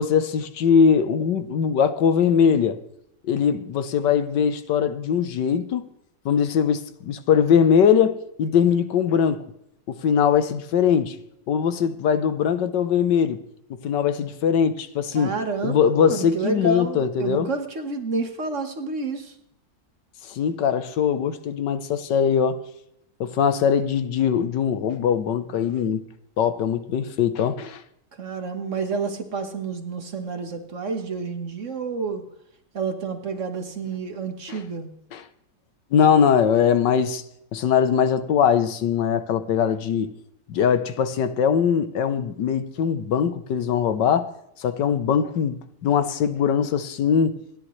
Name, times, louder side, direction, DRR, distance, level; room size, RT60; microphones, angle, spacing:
voice 1, 0.0-2.8 3.2-5.9 6.2-9.4 9.9-11.2 11.5-13.4 13.7-15.3 15.6-17.5 20.3-22.6 23.2-26.0 26.4-27.8 34.5-34.6 35.1-35.2 35.9-37.2 37.5-40.1 40.5-44.3 44.6-47.4, left 7 dB, 80° left, 1.6 m, -21 dB
voice 2, 15.1-19.3 28.2-32.2 32.7-34.9, right 4 dB, 45° right, 1.6 m, -29 dB
28.0 x 10.5 x 3.2 m
omnidirectional pair, 1.9 m